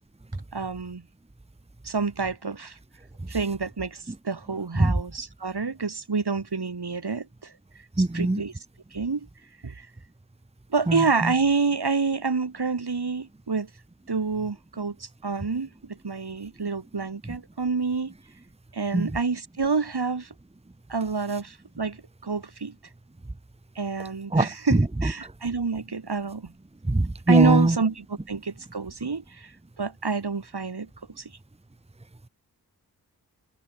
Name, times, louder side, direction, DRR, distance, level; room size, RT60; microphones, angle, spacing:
voice 1, 0.5-1.0 1.8-2.8 3.3-7.5 8.0-8.5 8.9-9.3 9.6-9.9 10.7-13.7 14.1-18.1 18.7-20.3 20.9-22.7 23.7-26.5 27.3-29.5 29.8-30.9 31.2-31.3, right 4 dB, 75° right, 6.8 m, -28 dB
voice 2, 8.0-8.4 10.9-11.0 18.9-19.1 24.3-24.5 26.9-27.7, right 2 dB, 15° right, 1.2 m, -21 dB
wide cardioid pair, 50°, 39 cm